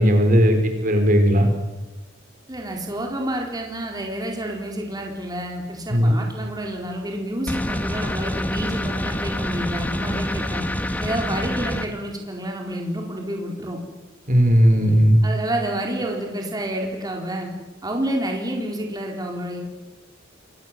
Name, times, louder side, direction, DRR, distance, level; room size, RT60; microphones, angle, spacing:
voice 1, 0.0-1.5 5.9-6.1 14.3-15.2, equal, 40° right, 6 dB, 4.3 m, -16 dB
voice 2, 2.5-10.6 11.0-13.8 15.2-17.5 17.8-19.6, right 1 dB, 20° right, 1 dB, 4.2 m, -29 dB
sound 1, 7.5-11.9, left 1 dB, 10° left, 1.6 m, -26 dB
27.5 x 22.0 x 7.6 m, 1.1 s
head